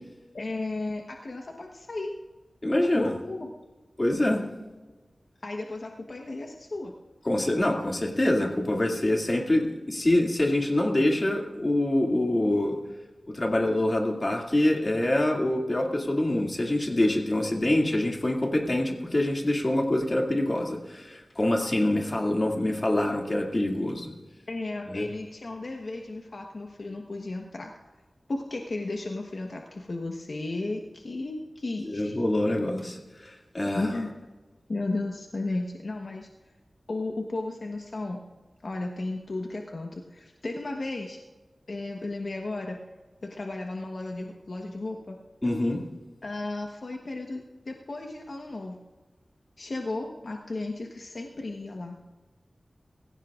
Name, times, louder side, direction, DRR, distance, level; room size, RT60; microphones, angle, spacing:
voice 1, 0.3-2.1 2.8-3.5 5.4-6.9 24.5-27.7 28.3-32.2 33.7-34.1 34.7-36.3 36.9-38.2 38.6-41.2 41.7-42.8 43.2-45.2 46.2-48.8 49.6-52.1, left 2 dB, 65° left, 1 dB, 1.2 m, -34 dB
voice 2, 2.6-3.1 4.0-4.4 7.3-12.8 13.3-24.1 24.9-25.1 31.8-33.9 45.4-45.8, left 1 dB, 35° left, 0 dB, 2.4 m, -25 dB
23.5 x 15.5 x 2.5 m, 1.2 s
wide cardioid pair, 75°, 0 cm